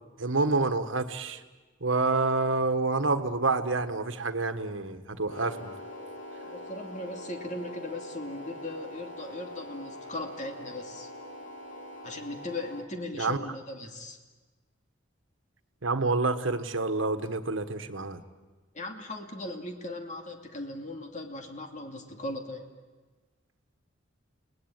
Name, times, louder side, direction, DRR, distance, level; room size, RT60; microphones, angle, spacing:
voice 1, 0.2-1.4 1.8-5.7 13.2-13.4 15.8-18.2, right 3 dB, 75° right, 9 dB, 1.5 m, -28 dB
sound 1, 5.3-12.8, left 1 dB, 65° left, 2.8 m, -43 dB
voice 2, 6.5-11.1 12.0-14.2 18.7-22.7, left 2 dB, 40° left, 4 dB, 2.5 m, -38 dB
29.5 x 19.5 x 9.1 m, 1.3 s
head